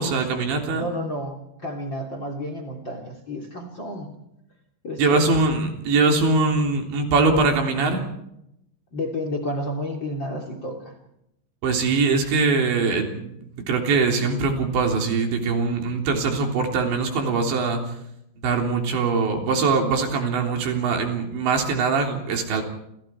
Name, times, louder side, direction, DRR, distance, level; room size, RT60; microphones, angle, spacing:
voice 1, 0.0-0.9 5.0-8.0 11.6-13.4 13.7-17.8 18.4-22.6, right 4 dB, 75° right, 2 dB, 5.8 m, -22 dB
voice 2, 0.7-4.1 4.8-5.3 8.9-10.9, left 1 dB, 30° left, 5 dB, 3.2 m, -31 dB
28.5 x 28.0 x 4.7 m, 0.81 s
omnidirectional pair, 5.3 m